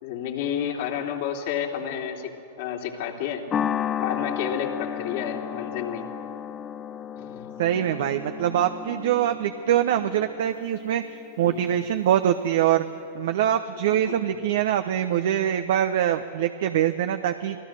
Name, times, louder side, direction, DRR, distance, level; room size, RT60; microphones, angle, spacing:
voice 1, 0.0-2.3 2.6-3.4 4.0-6.0 7.2-7.5 11.4-11.6 13.9-14.4, left 9 dB, 55° left, 1 dB, 3.2 m, -31 dB
sound 1, 3.5-12.0, left 9 dB, 30° left, 0.7 m, -33 dB
voice 2, 7.6-12.9 13.1-17.6, right 10 dB, 60° right, 8 dB, 0.9 m, -24 dB
27.5 x 18.5 x 6.5 m, 2.7 s
figure-of-eight pair, 100°, 0 cm